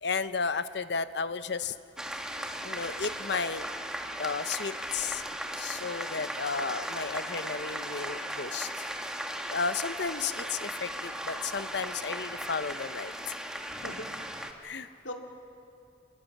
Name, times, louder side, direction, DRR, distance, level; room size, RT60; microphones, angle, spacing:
voice 1, 0.0-1.8 2.0-3.9 4.2-5.2 5.6-8.9 9.5-13.4 14.6-14.9, left 5 dB, 65° left, 12 dB, 0.9 m, -33 dB
sound 1, 2.0-14.5, equal, 5° right, 1.3 m, -37 dB
voice 2, 13.8-14.5 15.0-15.1, left 1 dB, 85° left, 2 dB, 2.6 m, -42 dB
27.5 x 20.5 x 7.4 m, 2.5 s
head